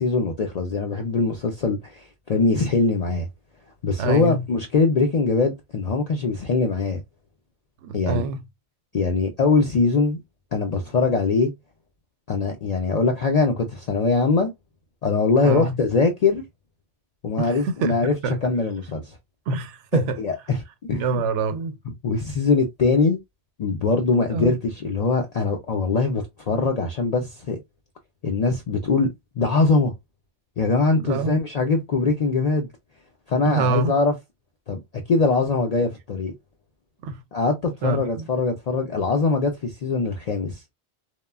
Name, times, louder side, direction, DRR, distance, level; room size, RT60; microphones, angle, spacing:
voice 1, 0.0-3.3 3.8-7.0 7.9-8.2 8.9-10.2 10.5-11.5 12.3-14.5 15.0-16.4 17.2-18.1 18.4-19.1 19.9-20.6 20.9-21.0 22.0-23.2 23.6-27.6 28.2-29.1 29.4-29.9 30.6-32.7 33.3-34.1 34.7-34.8 35.1-36.3 37.3-40.6, left 4 dB, 65° left, 0.4 m, -22 dB
voice 2, 4.0-4.4 7.8-8.4 15.4-15.8 17.4-18.4 19.5-20.2 21.0-21.8 24.3-24.6 31.0-31.4 33.4-33.9 37.0-37.2 37.8-38.2, right 3 dB, 90° right, 0.9 m, -25 dB
3.0 x 2.2 x 2.2 m
omnidirectional pair, 1.2 m